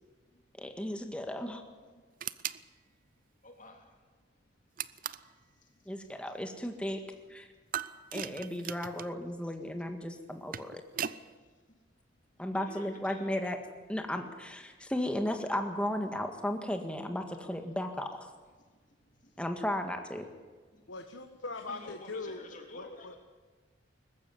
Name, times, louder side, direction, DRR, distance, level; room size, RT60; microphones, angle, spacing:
voice 1, 0.0-0.9 1.5-2.1 2.4-3.0 3.4-4.0 4.4-4.5 4.8-6.2 7.3-8.2 11.2-11.8 12.1-12.2 12.5-13.4 14.7-14.9 17.0-17.1 18.4-19.4 20.2-20.4 20.7-20.9 21.6-23.2, left 2 dB, 40° left, 3 dB, 3.5 m, -55 dB
voice 2, 0.6-1.6 5.9-7.0 7.3-7.5 8.1-10.8 12.4-13.6 13.9-18.3 19.4-20.3, left 1 dB, 5° left, 5 dB, 1.8 m, -35 dB
sound 1, 2.2-2.6 4.8-5.3 7.7-9.1 10.2-11.2, right 9 dB, 45° right, 0.6 m, -38 dB
voice 3, 20.9-22.5 22.7-23.1, left 3 dB, 85° left, 5 dB, 1.4 m, -41 dB
20.0 x 15.0 x 9.6 m, 1.4 s
head